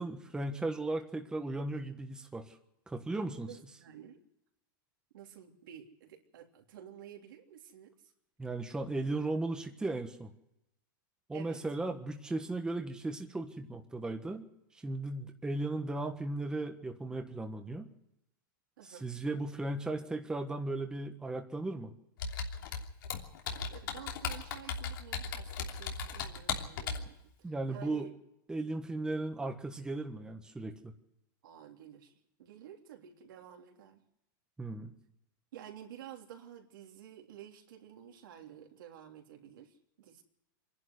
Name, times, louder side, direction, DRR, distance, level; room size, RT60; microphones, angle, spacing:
voice 1, 0.0-2.6 2.9-3.5 8.4-10.3 11.3-14.5 14.8-17.9 18.8-21.9 27.4-28.1 28.5-30.9 34.6-34.9, right 2 dB, 5° right, 4 dB, 1.4 m, -36 dB
voice 2, 3.5-4.2 5.1-7.9 11.3-11.6 18.8-19.0 23.2-23.3 23.7-28.1 31.4-32.1 32.4-34.0 35.5-40.2, right 10 dB, 75° right, 2 dB, 3.3 m, -51 dB
Computer keyboard, 22.2-27.1, left 5 dB, 80° left, 3.1 m, -37 dB
25.5 x 11.5 x 9.5 m, 0.84 s
supercardioid pair, 145°, 11 cm